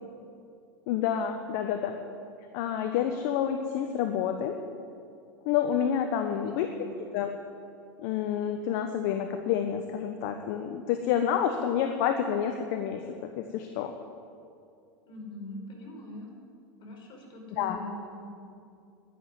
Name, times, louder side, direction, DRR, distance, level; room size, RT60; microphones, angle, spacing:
voice 1, 0.9-2.0 2.5-4.6 5.4-6.9 7.1-7.3 8.0-13.9 17.5-17.8, left 9 dB, 60° left, 6 dB, 1.1 m, -29 dB
voice 2, 6.2-6.5 6.8-6.9 15.1-16.3 16.8-18.3, left 2 dB, 45° left, 1 dB, 4.8 m, -42 dB
11.0 x 11.0 x 9.6 m, 2.4 s
hypercardioid pair, 95°, 12 cm